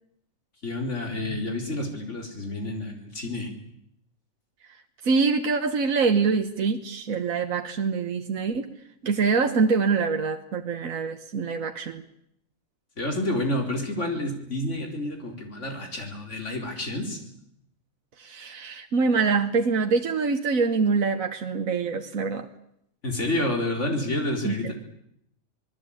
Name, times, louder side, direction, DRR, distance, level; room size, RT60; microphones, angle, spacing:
voice 1, 0.6-3.5 13.0-17.2 23.0-24.7, left 1 dB, 60° left, 3 dB, 4.6 m, -29 dB
voice 2, 5.0-8.7 9.0-12.0 18.2-22.5 24.4-24.7, right 4 dB, 85° right, 5 dB, 1.6 m, -25 dB
26.5 x 19.5 x 8.7 m, 0.74 s
omnidirectional pair, 1.4 m